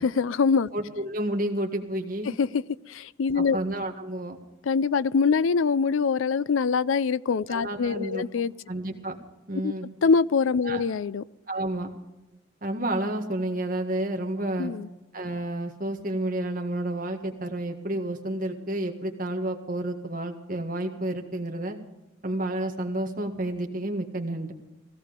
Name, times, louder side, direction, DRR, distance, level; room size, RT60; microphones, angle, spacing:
voice 1, 0.0-0.7 2.4-3.6 4.7-8.5 9.6-9.7 10.0-11.2 14.6-14.9, left 5 dB, 75° left, 0.4 m, -24 dB
voice 2, 0.7-2.3 3.4-4.4 7.5-8.2 8.7-9.2 9.5-9.9 10.6-10.8 11.5-11.9 12.6-14.7 15.1-21.8 22.2-24.5, right 1 dB, 40° right, 1.8 m, -30 dB
16.5 x 16.0 x 5.2 m
head